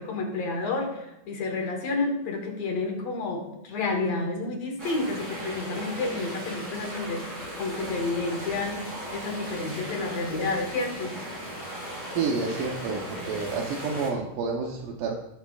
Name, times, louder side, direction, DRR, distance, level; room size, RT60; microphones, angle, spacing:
voice 1, 0.0-11.2, left 3 dB, 60° left, 2 dB, 2.2 m, -30 dB
sound 1, 4.8-14.1, equal, 20° right, 3.9 m, -37 dB
voice 2, 12.1-13.0 13.3-15.1, right 4 dB, 80° right, 0 dB, 2.5 m, -29 dB
16.5 x 8.4 x 2.4 m, 0.89 s
omnidirectional pair, 3.8 m